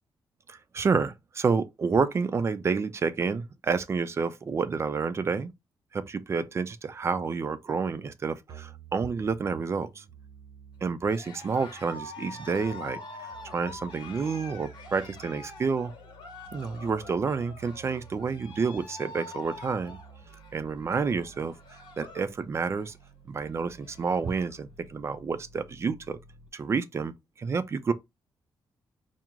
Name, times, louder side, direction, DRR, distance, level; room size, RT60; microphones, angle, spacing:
voice 1, 0.5-5.5 5.9-10.0 10.8-13.0 13.5-15.9 16.5-20.0 20.5-21.5 22.0-22.9 23.3-26.2 26.5-27.9, right 5 dB, 35° right, 0.4 m, -29 dB
sound 1, 8.5-26.5, right 6 dB, 65° right, 0.8 m, -52 dB
Cheering, 11.1-22.3 22.6-23.0 23.5-23.6 23.7-24.6, left 3 dB, 70° left, 1.3 m, -45 dB
4.5 x 2.0 x 3.6 m
cardioid pair, 135°, 8 cm